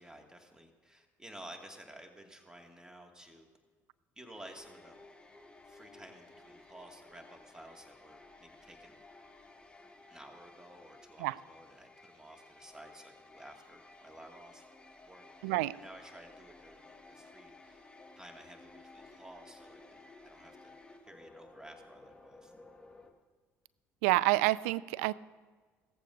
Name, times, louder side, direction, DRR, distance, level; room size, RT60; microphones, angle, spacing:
voice 1, 0.0-3.5 4.2-5.0 5.7-9.0 10.1-14.7 15.0-17.9 18.1-20.7 21.1-22.5, right 1 dB, 10° right, 3 dB, 2.2 m, -53 dB
sound 1, 4.3-23.1, left 2 dB, 10° left, 1.6 m, -56 dB
voice 2, 15.4-15.7 24.0-25.1, right 19 dB, 70° right, 19 dB, 0.3 m, -28 dB
16.5 x 14.5 x 2.7 m, 1.4 s
hypercardioid pair, 60°, 8 cm